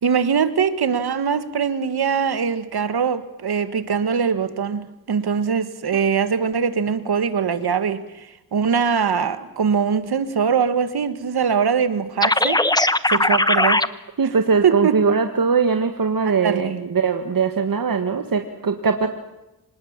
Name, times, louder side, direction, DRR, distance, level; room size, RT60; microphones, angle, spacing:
voice 1, 0.0-13.8 14.6-15.0 16.2-16.8, right 6 dB, 80° right, 1.7 m, -22 dB
sound 1, 12.2-13.9, left 1 dB, 10° left, 1.0 m, -18 dB
voice 2, 14.2-19.1, right 5 dB, 60° right, 1.8 m, -21 dB
26.0 x 20.0 x 7.4 m
cardioid pair, 75°, 38 cm